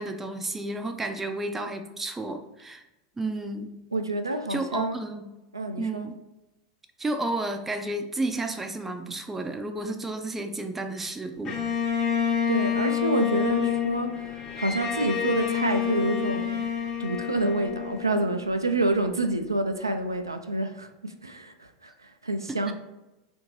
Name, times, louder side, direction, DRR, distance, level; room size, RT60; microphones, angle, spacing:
voice 1, 0.0-2.8 3.2-3.7 4.5-5.3 5.8-6.2 7.0-11.6 22.7-22.8, right 2 dB, 10° right, 6 dB, 0.4 m, -32 dB
voice 2, 3.9-5.0 5.5-6.1 12.5-16.7 17.0-22.7, right 2 dB, 90° right, 6 dB, 0.3 m, -28 dB
Bowed string instrument, 11.4-18.7, left 9 dB, 35° left, 0.9 m, -28 dB
3.6 x 2.5 x 3.0 m, 0.99 s
figure-of-eight pair, 85°, 2 cm